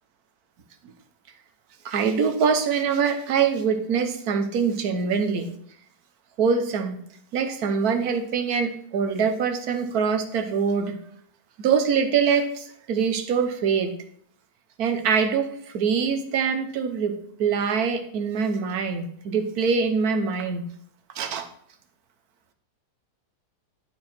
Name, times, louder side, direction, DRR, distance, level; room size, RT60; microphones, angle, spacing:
voice 1, 1.8-5.5 6.4-7.0 7.3-11.0 11.6-13.9 14.8-20.6 21.1-21.5, right 6 dB, 65° right, 7 dB, 1.4 m, -24 dB
11.5 x 4.7 x 4.3 m, 0.65 s
omnidirectional pair, 1.7 m